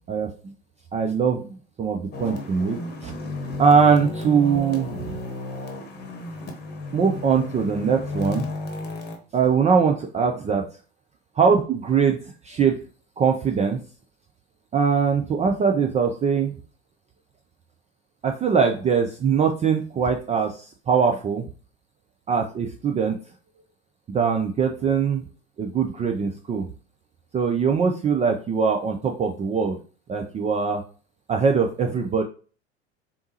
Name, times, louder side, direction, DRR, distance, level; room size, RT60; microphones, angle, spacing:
voice 1, 0.1-0.5 0.9-3.1 3.6-5.2 6.9-8.5 9.3-10.6 11.4-12.8 13.2-13.8 14.7-16.6 18.2-21.4 22.3-23.2 24.1-25.2 25.6-26.6 27.3-29.8 30.1-30.8 31.3-32.2, right 6 dB, 20° right, 3 dB, 0.4 m, -22 dB
sound 1, 2.1-9.2, left 2 dB, 30° left, 1.1 m, -33 dB
4.0 x 3.5 x 2.8 m, 0.38 s
figure-of-eight pair, 75°, 34 cm